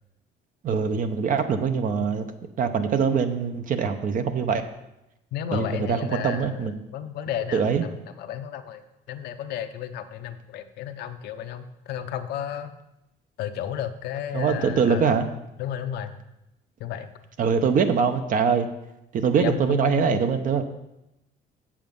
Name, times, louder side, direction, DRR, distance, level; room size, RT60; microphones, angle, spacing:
voice 1, 0.6-2.3 2.6-4.6 5.5-6.8 7.5-7.8 14.3-15.3 17.4-18.7 19.1-20.6, right 6 dB, 50° right, 8 dB, 0.9 m, -23 dB
voice 2, 5.3-8.8 9.1-12.7 13.4-15.2 15.6-16.2 16.8-17.1 19.3-20.2, left 9 dB, 75° left, 7 dB, 0.8 m, -33 dB
7.4 x 7.2 x 5.4 m, 0.90 s
cardioid pair, 110°, 17 cm